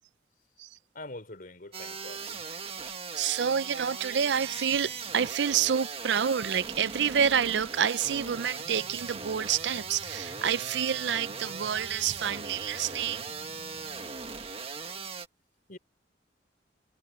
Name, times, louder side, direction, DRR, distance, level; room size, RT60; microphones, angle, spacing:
voice 1, 0.9-2.5 15.7-15.8, left 2 dB, 50° left, 3.9 m, -44 dB
sound 1, 1.7-15.3, right 5 dB, 35° right, 1.6 m, -39 dB
voice 2, 3.2-13.2, right 8 dB, 70° right, 0.5 m, -28 dB
sound 2, 8.0-14.1, equal, 5° left, 4.1 m, -53 dB
head